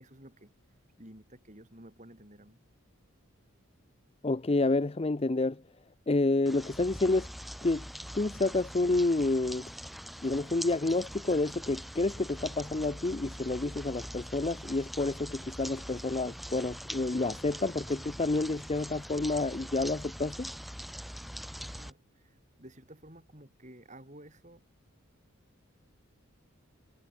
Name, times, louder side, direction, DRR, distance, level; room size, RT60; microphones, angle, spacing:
voice 1, 0.0-2.6 21.6-24.6, right 1 dB, 35° right, 6.8 m, -53 dB
voice 2, 4.2-5.6 6.1-7.3 7.6-7.8 8.1-9.7 10.2-20.5, left 2 dB, 25° left, 0.5 m, -29 dB
sound 1, 6.5-21.9, equal, ahead, 0.8 m, -43 dB
head